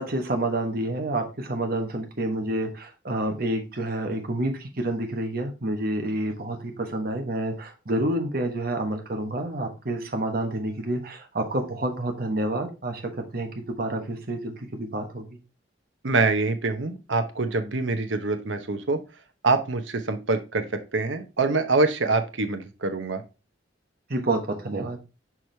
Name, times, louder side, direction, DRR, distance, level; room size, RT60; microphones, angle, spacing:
voice 1, 0.0-13.0 13.3-13.5 13.8-15.2 24.1-25.0, right 1 dB, 50° right, 4 dB, 1.2 m, -28 dB
voice 2, 16.0-19.0 19.4-20.7 20.9-23.2, right 3 dB, 85° right, 8 dB, 0.9 m, -25 dB
6.0 x 4.7 x 3.3 m, 0.30 s
head